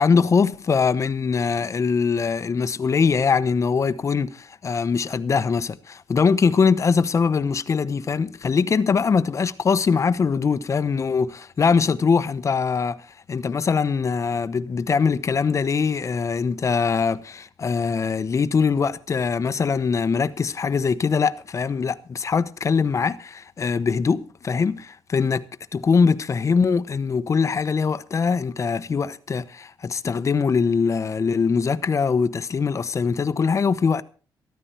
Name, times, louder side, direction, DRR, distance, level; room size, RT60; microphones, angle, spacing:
voice 1, 0.0-25.4 25.7-34.0, left 5 dB, 40° left, 0.9 m, -22 dB
14.0 x 14.0 x 4.5 m
cardioid pair, 105°, 8 cm